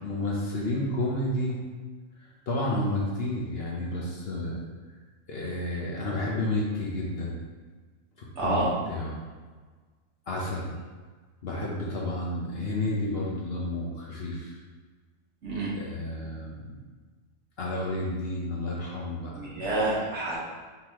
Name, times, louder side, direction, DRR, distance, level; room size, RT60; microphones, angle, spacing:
voice 1, 0.0-1.6 2.2-4.6 5.3-7.4 8.4-9.2 10.3-10.8 11.4-14.6 15.7-16.8 17.6-19.5, left 1 dB, 55° left, -3 dB, 0.8 m, -31 dB
voice 2, 8.3-8.7 15.4-15.7 19.3-20.4, right 2 dB, 60° right, -6 dB, 1.5 m, -28 dB
4.6 x 3.9 x 2.9 m, 1.4 s
omnidirectional pair, 1.4 m